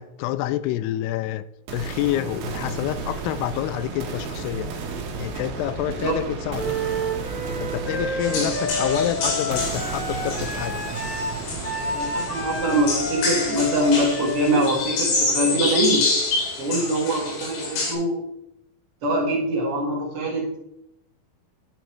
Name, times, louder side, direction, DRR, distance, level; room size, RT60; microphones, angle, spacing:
voice 1, 0.0-1.4 1.7-4.7 5.2-6.7 7.6-10.8, left 13 dB, 85° left, 14 dB, 2.6 m, -28 dB
sound 1, 1.7-15.6, right 4 dB, 70° right, 2.9 m, -34 dB
Wind instrument woodwind instrument, 6.5-16.3, equal, 30° left, 2.7 m, -30 dB
sound 2, 8.2-17.9, left 3 dB, 70° left, 4.3 m, -28 dB
voice 2, 11.8-16.1 16.6-18.2 19.0-20.5, right 1 dB, 45° right, -4 dB, 2.2 m, -23 dB
9.1 x 6.1 x 4.6 m, 0.81 s
omnidirectional pair, 4.6 m